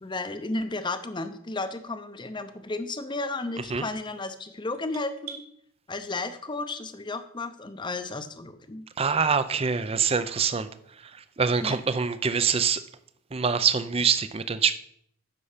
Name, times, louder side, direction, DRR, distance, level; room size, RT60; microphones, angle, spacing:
voice 1, 0.0-5.4 5.9-8.9 11.6-11.8, left 2 dB, 20° left, 9 dB, 0.7 m, -33 dB
sound 1, 3.6-5.5, right 8 dB, 85° right, 1.5 m, -46 dB
voice 2, 9.0-10.7 11.4-12.8 13.3-14.8, right 6 dB, 25° right, 13 dB, 0.5 m, -24 dB
9.7 x 6.9 x 5.0 m, 0.69 s
head